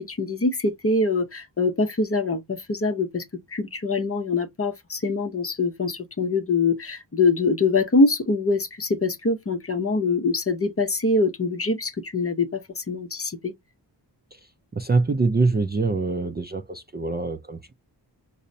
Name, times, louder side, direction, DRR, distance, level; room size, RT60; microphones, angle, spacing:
voice 1, 0.0-13.5, left 3 dB, 35° left, 0.6 m, -24 dB
voice 2, 14.7-17.7, right 3 dB, 25° right, 0.4 m, -24 dB
5.4 x 2.0 x 2.6 m
wide cardioid pair, 110°, 42 cm